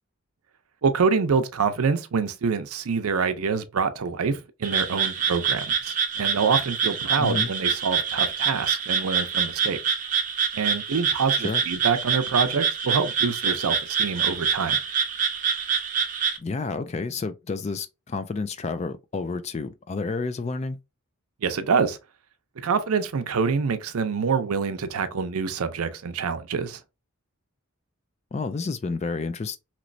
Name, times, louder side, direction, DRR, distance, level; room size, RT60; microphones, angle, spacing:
voice 1, 0.8-9.8 10.5-14.8 21.4-22.0 22.6-26.8, right 5 dB, 85° right, 0.5 m, -26 dB
Frog, 4.6-16.4, right 6 dB, 35° right, 0.5 m, -26 dB
voice 2, 7.2-7.5 11.4-11.6 16.4-20.8 28.3-29.6, left 4 dB, 30° left, 0.3 m, -30 dB
3.0 x 3.0 x 2.6 m
head